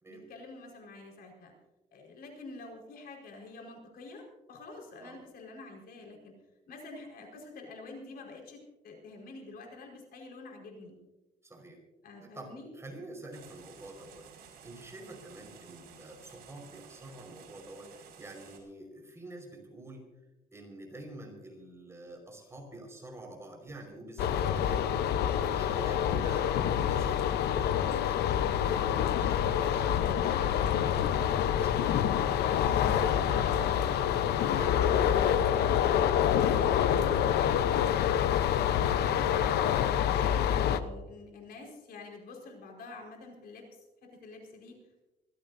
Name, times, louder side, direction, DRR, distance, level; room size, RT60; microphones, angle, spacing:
voice 1, 0.1-1.5 1.9-6.3 6.7-11.0 12.0-12.7 39.0-44.8, left 3 dB, 65° left, 0 dB, 5.0 m, -48 dB
voice 2, 11.4-11.8 12.2-20.0 20.5-32.3 32.6-34.2 34.5-37.4, right 2 dB, 15° right, 2 dB, 5.2 m, -47 dB
sound 1, 13.3-18.6, right 7 dB, 90° right, 5.4 m, -54 dB
sound 2, 24.2-40.8, left 9 dB, 80° left, 0.9 m, -27 dB
25.5 x 16.0 x 2.7 m, 1.0 s
cardioid pair, 130°, 17 cm